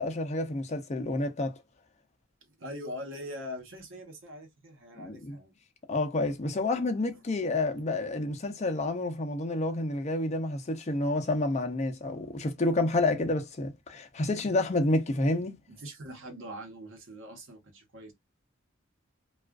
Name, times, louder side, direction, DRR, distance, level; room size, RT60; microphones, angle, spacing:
voice 1, 0.0-1.6 5.0-5.4 5.9-15.6, left 2 dB, 35° left, 0.5 m, -29 dB
voice 2, 2.4-5.5 15.7-18.1, equal, 80° right, 1.0 m, -42 dB
2.4 x 2.3 x 2.2 m
head